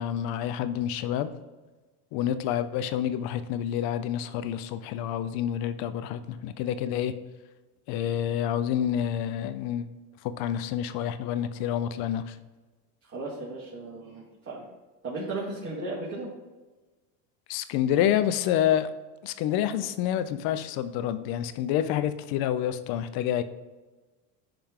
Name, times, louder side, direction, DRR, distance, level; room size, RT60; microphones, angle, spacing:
voice 1, 0.0-1.3 2.1-7.1 7.9-9.9 10.4-12.4 17.5-18.9 19.2-23.4, left 10 dB, 55° left, 12 dB, 0.7 m, -28 dB
voice 2, 13.1-14.6 15.0-16.3, right 2 dB, 30° right, -7 dB, 2.1 m, -35 dB
10.5 x 3.5 x 3.7 m, 1.2 s
supercardioid pair, 115°, 44 cm